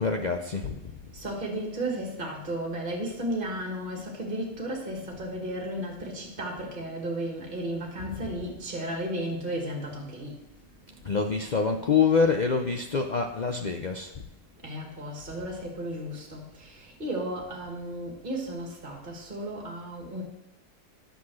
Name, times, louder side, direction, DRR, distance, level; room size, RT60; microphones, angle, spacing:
voice 1, 0.0-0.9 8.2-8.3 11.0-14.1, left 5 dB, 90° left, 4 dB, 0.4 m, -26 dB
voice 2, 0.9-10.4 11.1-11.2 11.4-11.9 14.6-20.2, right 1 dB, 30° right, 0 dB, 2.1 m, -34 dB
9.8 x 6.7 x 6.3 m, 0.86 s
omnidirectional pair, 1.7 m